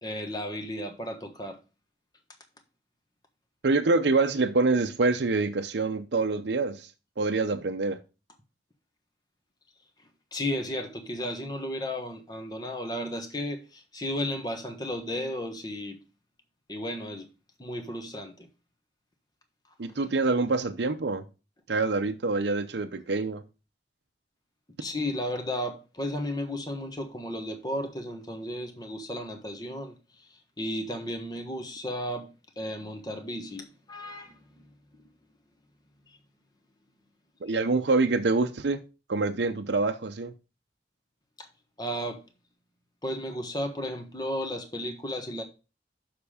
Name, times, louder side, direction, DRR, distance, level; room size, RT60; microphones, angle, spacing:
voice 1, 0.0-1.6 10.3-16.0 16.7-17.3 17.6-18.5 24.8-34.4 36.1-36.2 37.5-37.6 41.4-41.5 41.8-42.2 43.0-45.4, left 1 dB, 20° left, 1.2 m, -34 dB
voice 2, 3.6-6.9 7.2-8.0 19.8-21.2 21.7-23.4 37.4-38.8 39.1-40.3, right 3 dB, 75° right, 0.6 m, -26 dB
7.1 x 5.8 x 5.0 m
head